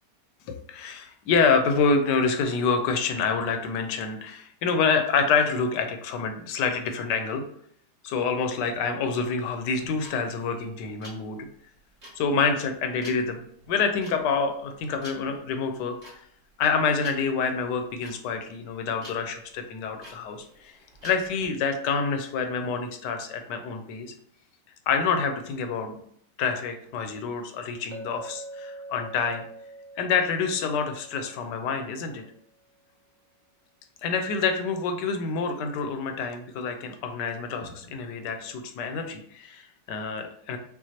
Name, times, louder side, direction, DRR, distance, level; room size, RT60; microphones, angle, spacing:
voice 1, 0.5-7.4 8.0-11.4 12.2-13.4 13.7-15.9 16.6-20.7 21.0-24.1 24.9-26.0 26.4-29.4 30.0-32.2 34.0-40.6, left 5 dB, 75° left, 6 dB, 1.2 m, -27 dB
sound 1, 9.7-21.5, equal, 25° right, 1.5 m, -49 dB
Chink clink, 27.9-32.1, right 2 dB, 60° right, 0.7 m, -44 dB
5.7 x 2.5 x 2.8 m, 0.65 s
omnidirectional pair, 1.9 m